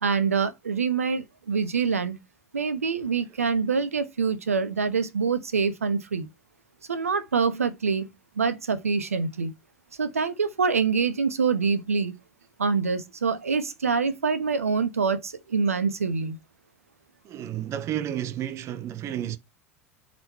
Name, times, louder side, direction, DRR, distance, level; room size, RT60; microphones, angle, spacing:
voice 1, 0.0-2.2 2.5-6.3 6.9-8.1 8.4-9.5 10.0-12.1 12.6-16.4, right 5 dB, 80° right, 1.0 m, -25 dB
voice 2, 17.2-19.4, right 11 dB, 40° right, 0.8 m, -31 dB
7.8 x 4.3 x 4.3 m
figure-of-eight pair, 80°, 8 cm